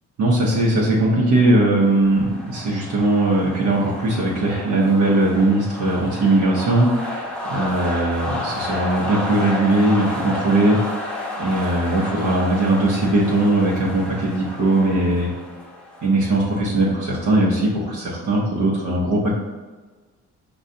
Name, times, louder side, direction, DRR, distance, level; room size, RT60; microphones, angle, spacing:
voice 1, 0.2-10.9 11.3-15.3 16.0-19.3, right 2 dB, 75° right, -5 dB, 0.9 m, -19 dB
Crowd Cheering - Rhythmic Cheering, 1.4-18.0, left 1 dB, 5° left, 0.8 m, -32 dB
5.3 x 2.4 x 2.6 m, 1.3 s
cardioid pair, 90°, 30 cm